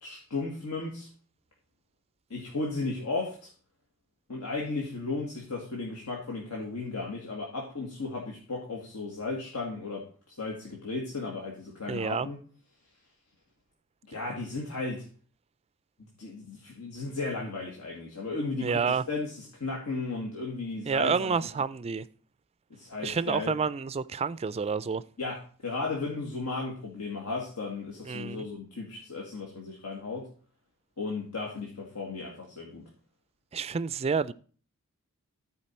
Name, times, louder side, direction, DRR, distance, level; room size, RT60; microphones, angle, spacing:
voice 1, 0.0-1.1 2.3-3.5 4.3-12.4 14.1-15.0 16.0-18.8 19.1-21.3 22.7-23.5 25.2-30.3 31.0-32.8, left 3 dB, 85° left, 1.8 m, -35 dB
voice 2, 11.9-12.3 18.6-19.0 20.9-22.1 23.0-25.0 28.1-28.4 33.5-34.3, right 5 dB, 25° right, 0.3 m, -29 dB
14.0 x 4.7 x 4.3 m
head